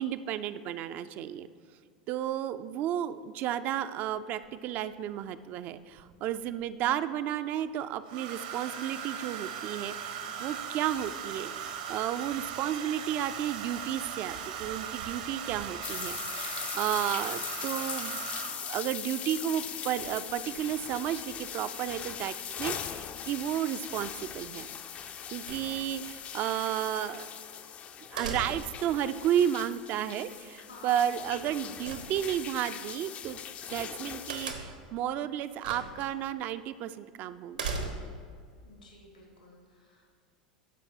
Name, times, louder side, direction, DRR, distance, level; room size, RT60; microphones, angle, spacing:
voice 1, 0.0-1.5 2.1-18.2 18.6-24.7 25.3-27.3 28.1-33.4 33.7-37.7, right 10 dB, 40° right, 12 dB, 0.4 m, -32 dB
Domestic sounds home sounds, 4.4-4.5 6.0-6.6 8.1-18.8 20.0-20.3 20.6-20.9, right 8 dB, 65° right, 0.9 m, -39 dB
voice 2, 10.1-10.5 16.1-16.5 30.6-31.0 31.3-31.5 38.6-40.1, left 2 dB, 90° left, 0 dB, 2.3 m, -53 dB
sound 1, 15.8-34.5, left 8 dB, 30° left, 0.4 m, -40 dB
sound 2, 25.5-26.1 28.2-28.9 31.8-32.6 34.3-34.9 35.6-36.1 36.4-36.5 37.5-38.3, right 4 dB, 80° right, 1.2 m, -37 dB
13.5 x 5.2 x 4.6 m, 2.1 s
figure-of-eight pair, 85°, 4 cm